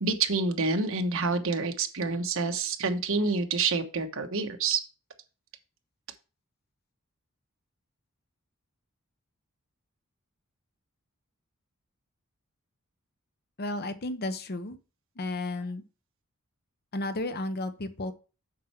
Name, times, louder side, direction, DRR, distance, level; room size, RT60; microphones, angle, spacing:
voice 1, 0.0-4.8, right 4 dB, 70° right, 6 dB, 1.1 m, -28 dB
voice 2, 13.6-14.8 15.2-15.8 16.9-18.1, left 2 dB, 50° left, 10 dB, 0.8 m, -33 dB
7.6 x 5.6 x 4.4 m, 0.33 s
head